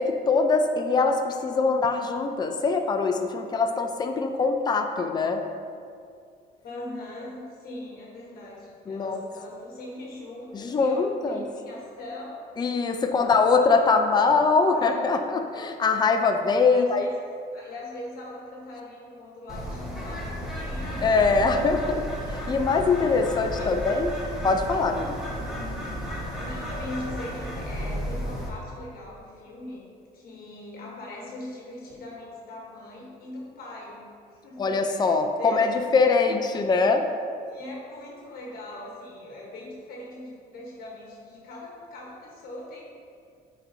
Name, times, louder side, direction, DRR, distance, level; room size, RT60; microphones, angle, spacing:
voice 1, 0.0-5.4 8.9-9.2 10.5-11.4 12.6-17.1 21.0-24.2 24.4-25.2 34.6-37.1, left 4 dB, 25° left, 5 dB, 0.4 m, -23 dB
voice 2, 6.6-12.5 13.1-13.5 14.7-15.0 16.7-17.1 17.5-21.2 23.6-23.8 25.4-26.0 26.4-29.9 30.1-34.0 34.3-35.7 37.5-42.8, left 1 dB, 60° left, -3 dB, 1.2 m, -40 dB
Bird, 19.5-28.5, equal, 5° right, 1.3 m, -33 dB
9.0 x 4.1 x 2.7 m, 2.3 s
cardioid pair, 110°, 17 cm